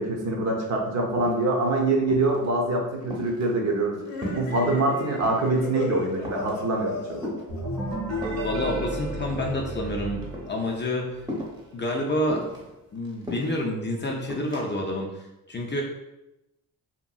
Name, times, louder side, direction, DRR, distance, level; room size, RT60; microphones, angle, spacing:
voice 1, 0.0-4.0 4.3-7.2, right 2 dB, 45° right, 0 dB, 0.8 m, -24 dB
sound 1, 0.7-0.8 1.0-1.7 2.1-2.5 2.8-4.6 4.9-5.6 6.0-6.6 7.2-8.5 9.2-10.0 10.2-10.5 11.3-11.7 12.3-13.7 14.3-14.7, left 1 dB, 10° right, 0.9 m, -37 dB
sound 2, 4.0-8.7, left 3 dB, 70° left, 0.7 m, -36 dB
sound 3, 7.5-11.2, right 1 dB, 75° right, 1.3 m, -32 dB
voice 2, 8.4-11.1 11.7-12.5 12.9-15.1 15.5-15.8, left 1 dB, 30° left, 0 dB, 0.4 m, -28 dB
2.8 x 2.5 x 2.3 m, 0.94 s
cardioid pair, 70°, 37 cm